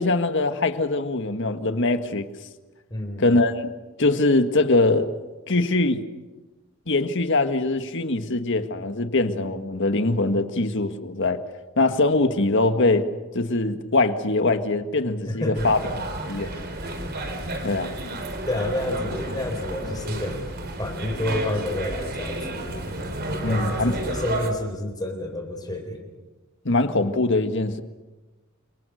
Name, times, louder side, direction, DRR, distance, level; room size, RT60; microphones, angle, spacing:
voice 1, 0.0-2.2 3.2-3.7 4.0-5.1 5.5-6.0 6.9-11.4 11.8-13.1 13.3-15.8 16.3-16.5 17.6-17.9 23.4-23.9 26.6-27.8, left 2 dB, 60° left, 8 dB, 1.7 m, -22 dB
voice 2, 2.9-3.4 15.3-15.7 18.5-20.4 20.8-23.0 23.3-26.1, left 1 dB, 20° left, 4 dB, 4.1 m, -29 dB
sound 1, 15.5-24.5, right 2 dB, 50° right, 3.9 m, -32 dB
30.0 x 26.0 x 6.5 m, 1.2 s
head